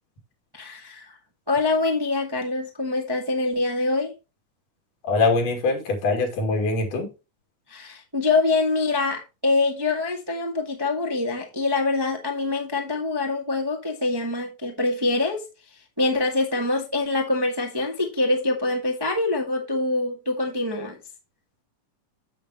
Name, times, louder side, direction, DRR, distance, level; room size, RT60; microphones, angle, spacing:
voice 1, 0.5-1.1 1.5-4.1 7.7-15.4 16.0-21.0, left 3 dB, 15° right, 0.9 m, -25 dB
voice 2, 5.1-7.1, left 3 dB, 90° left, 4.1 m, -23 dB
8.9 x 8.2 x 3.0 m
omnidirectional pair, 3.6 m